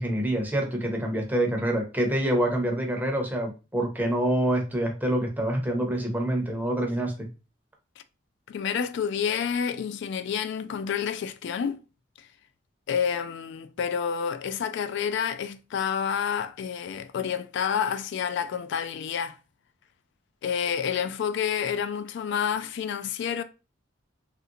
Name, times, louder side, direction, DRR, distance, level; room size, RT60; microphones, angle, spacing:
voice 1, 0.0-7.3, right 1 dB, 10° right, 0.7 m, -26 dB
voice 2, 8.5-11.8 12.2-12.3 12.9-19.4 20.4-23.4, left 7 dB, 60° left, 0.3 m, -29 dB
3.2 x 2.5 x 2.7 m
head